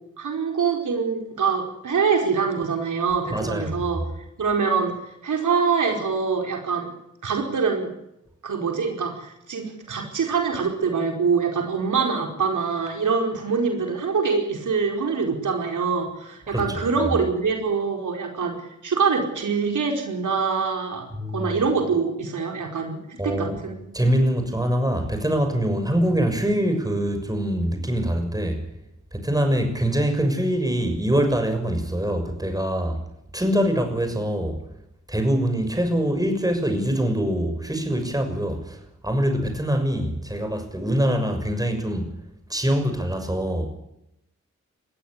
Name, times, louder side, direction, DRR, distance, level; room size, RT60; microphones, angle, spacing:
voice 1, 0.2-4.0 4.4-4.9 5.2-6.9 7.2-7.9 8.4-18.6 18.8-21.1 21.3-23.8, right 5 dB, 85° right, 2 dB, 4.9 m, -24 dB
voice 2, 3.3-3.7 16.5-16.6 21.1-21.6 23.2-23.6 23.9-28.6 29.1-33.0 33.3-34.6 35.1-42.1 42.5-43.7, equal, 10° right, 6 dB, 6.7 m, -24 dB
20.5 x 16.0 x 10.0 m, 0.84 s
cardioid pair, 55°, 30 cm